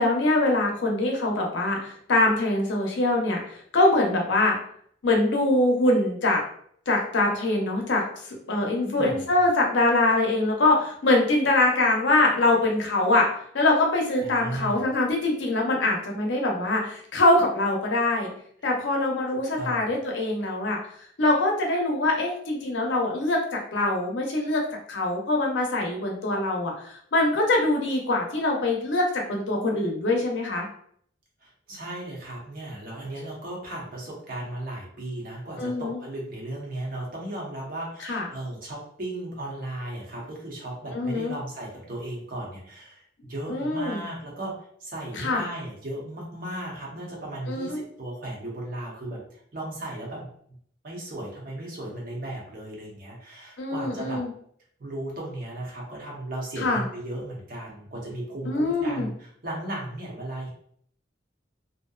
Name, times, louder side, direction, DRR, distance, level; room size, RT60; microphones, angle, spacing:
voice 1, 0.0-4.6 5.0-6.4 6.9-8.0 8.5-13.3 13.5-18.3 18.6-20.8 21.2-23.4 23.7-24.6 24.9-30.7 35.6-36.0 38.0-38.2 40.9-41.3 43.5-44.0 45.2-45.4 47.5-47.9 53.6-54.3 56.6-56.8 58.4-59.1, left 2 dB, 65° left, 0 dB, 0.6 m, -23 dB
voice 2, 8.8-9.2 14.2-14.8 19.3-19.9 31.4-49.2 49.5-50.3 50.8-54.2 54.8-60.5, right 1 dB, 45° right, -3 dB, 0.8 m, -36 dB
2.6 x 2.1 x 2.3 m, 0.63 s
head